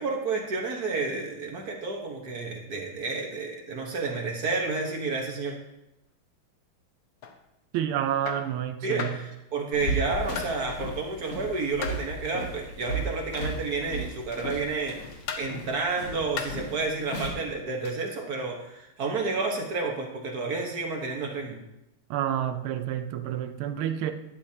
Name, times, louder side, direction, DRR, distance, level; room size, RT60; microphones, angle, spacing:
voice 1, 0.0-5.5 8.8-15.0 15.4-21.6, right 3 dB, 50° right, 1 dB, 1.6 m, -30 dB
sound 1, 7.2-7.4 8.3-8.5 9.0-9.3 10.4-10.6 11.8-12.1 13.3-13.6 14.3-14.6 15.3-15.6 16.4-16.7 17.8-18.1, left 7 dB, 65° left, 1.0 m, -36 dB
voice 2, 7.7-9.2 22.1-24.1, right 10 dB, 80° right, 9 dB, 1.5 m, -29 dB
sound 2, 9.7-17.3, right 1 dB, 85° left, 2.5 m, -35 dB
12.0 x 8.8 x 2.8 m, 0.87 s
omnidirectional pair, 2.4 m